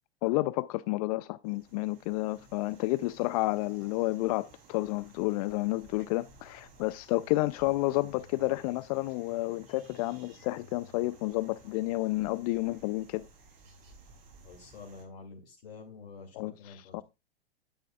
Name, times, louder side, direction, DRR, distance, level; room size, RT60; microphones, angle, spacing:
voice 1, 0.2-13.3 16.3-17.0, left 19 dB, 40° left, 0.4 m, -30 dB
sound 1, 1.4-15.0, right 2 dB, 45° right, 6.5 m, -56 dB
voice 2, 14.4-17.0, left 4 dB, 65° left, 2.5 m, -48 dB
10.5 x 10.0 x 2.3 m
hypercardioid pair, 110°, 31 cm